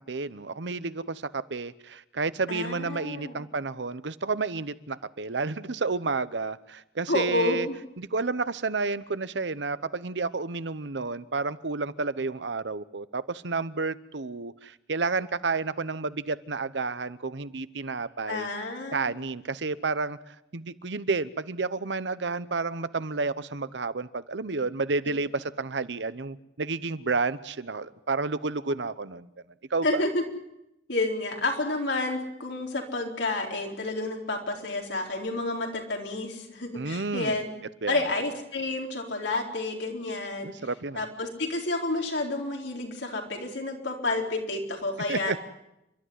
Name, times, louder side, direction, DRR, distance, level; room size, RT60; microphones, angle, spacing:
voice 1, 0.1-7.7 8.0-18.5 18.9-29.3 29.7-30.0 36.7-37.3 37.8-38.0 40.4-41.0 45.1-45.4, right 4 dB, 75° right, 0.9 m, -31 dB
voice 2, 2.5-3.3 7.1-7.7 18.3-19.1 29.8-30.2 30.9-37.5 37.9-40.5 41.0-45.4, left 2 dB, 80° left, 4.2 m, -30 dB
29.5 x 13.0 x 9.6 m
head